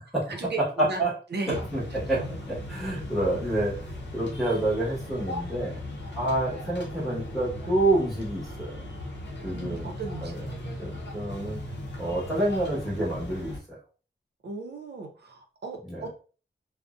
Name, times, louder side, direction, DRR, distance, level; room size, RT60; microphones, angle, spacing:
voice 1, 0.3-1.6 2.1-2.3 9.5-10.8 14.4-16.1, right 3 dB, 60° right, 3 dB, 0.5 m, -37 dB
sound 1, 1.5-13.6, left 1 dB, 65° left, 0.6 m, -38 dB
voice 2, 1.5-1.8 2.1-2.2 2.4-3.7 4.1-5.8 6.1-8.9 9.4-9.9 10.2-10.4 10.8-11.6 12.0-13.5 15.9-16.0, right 2 dB, ahead, -8 dB, 1.1 m, -28 dB
2.5 x 2.1 x 2.4 m, 0.37 s
wide cardioid pair, 115°, 20 cm